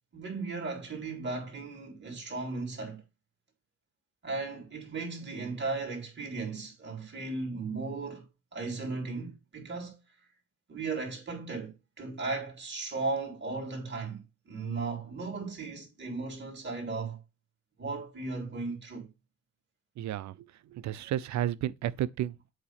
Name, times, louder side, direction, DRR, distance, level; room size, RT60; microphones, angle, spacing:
voice 1, 0.1-3.0 4.2-8.3 8.5-10.0 10.7-14.2 14.5-17.2 17.8-19.1, right 3 dB, 35° right, 3.5 m, -36 dB
voice 2, 20.0-22.5, right 12 dB, 65° right, 0.5 m, -33 dB
7.9 x 2.9 x 5.7 m
cardioid pair, 90°, 30 cm